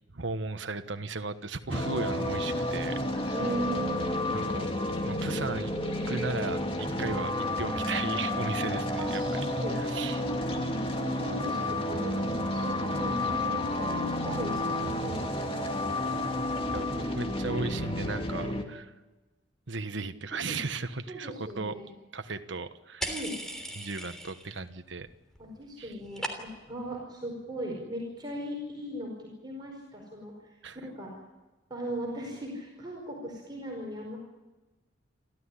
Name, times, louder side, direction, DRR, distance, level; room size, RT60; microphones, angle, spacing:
voice 1, 0.1-3.3 4.3-4.7 5.0-5.7 6.1-7.3 7.6-9.2 9.8-10.2 16.7-18.9 19.7-21.8 22.1-23.1 23.7-25.1 25.8-25.9 30.6-30.8, right 3 dB, 70° right, 8 dB, 1.3 m, -36 dB
sound 1, 1.7-18.6, left 1 dB, 30° left, 2.4 m, -31 dB
voice 2, 3.3-4.4 9.0-9.8 10.1-12.2 12.5-15.2 20.4-20.6 21.1-21.9 23.1-23.3 25.4-31.1 31.7-34.2, right 1 dB, 25° right, -2 dB, 5.0 m, -38 dB
sound 2, 23.0-24.6 24.9-25.4 25.7-26.8, right 1 dB, 5° left, 3.2 m, -38 dB
29.0 x 14.0 x 10.0 m, 1.2 s
head